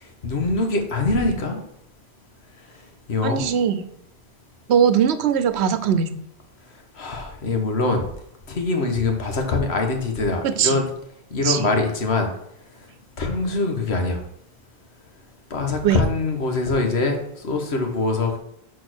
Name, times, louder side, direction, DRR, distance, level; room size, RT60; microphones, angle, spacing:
voice 1, 0.0-1.6 3.1-3.5 6.9-8.1 8.5-10.9 11.3-12.3 13.2-14.2 15.5-18.4, left 3 dB, 85° left, 4 dB, 1.5 m, -23 dB
voice 2, 3.2-3.9 4.7-6.2 10.4-10.8 11.4-11.7 15.8-16.0, right 8 dB, 85° right, 11 dB, 0.9 m, -20 dB
6.3 x 4.6 x 6.1 m, 0.74 s
omnidirectional pair, 1.1 m